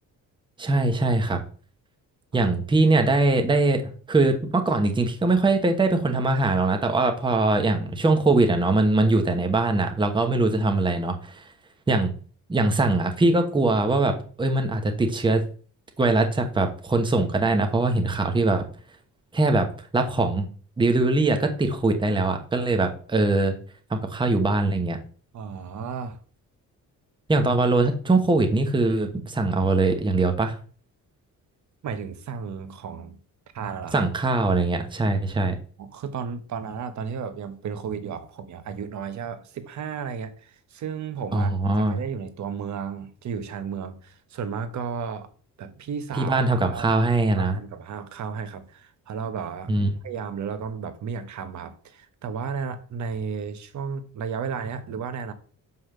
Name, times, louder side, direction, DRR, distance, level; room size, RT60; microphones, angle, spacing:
voice 1, 0.6-1.4 2.3-3.8 4.1-11.4 11.9-12.1 12.5-15.4 16.0-18.7 19.3-19.7 19.9-20.5 20.8-23.5 23.9-25.0 27.3-30.6 33.9-35.6 41.3-42.0 46.2-47.6 49.7-49.9, right 2 dB, 15° right, 1.0 m, -22 dB
voice 2, 25.3-26.2 31.8-33.2 33.5-34.1 35.8-41.5 41.9-45.3 45.6-46.4 46.7-47.1 47.3-49.8 50.0-55.3, right 6 dB, 55° right, 1.2 m, -33 dB
6.4 x 5.6 x 6.6 m
wide cardioid pair, 175°, 33 cm